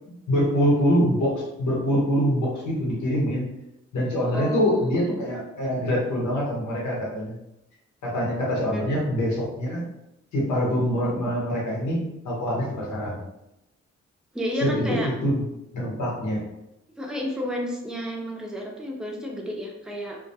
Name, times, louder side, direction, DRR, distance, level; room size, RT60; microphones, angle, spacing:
voice 1, 0.0-3.5 3.9-7.3 8.0-9.8 10.3-13.2 14.6-15.4 15.7-16.4, equal, 85° left, -3 dB, 0.8 m, -24 dB
voice 2, 4.3-5.1 8.7-8.9 14.3-15.1 17.0-20.2, equal, ahead, -1 dB, 0.6 m, -31 dB
2.2 x 2.1 x 2.7 m, 0.89 s
supercardioid pair, 50°, 29 cm